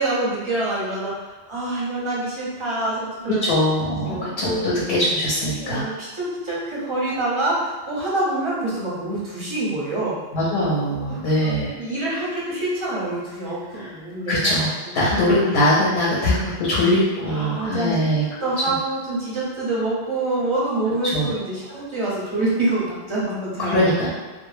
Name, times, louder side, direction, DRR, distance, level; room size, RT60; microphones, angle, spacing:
voice 1, 0.0-3.4 4.1-4.7 5.3-10.2 11.0-14.5 15.3-15.4 17.3-18.1 18.4-24.1, right 2 dB, 35° right, -7 dB, 0.6 m, -26 dB
voice 2, 3.4-5.9 10.3-11.8 13.7-13.9 14.3-18.2 18.7-18.8 21.1-21.3 21.7-21.8 23.6-24.1, left 1 dB, 75° left, -6 dB, 0.8 m, -21 dB
2.1 x 2.0 x 3.1 m, 1.3 s
omnidirectional pair, 1.0 m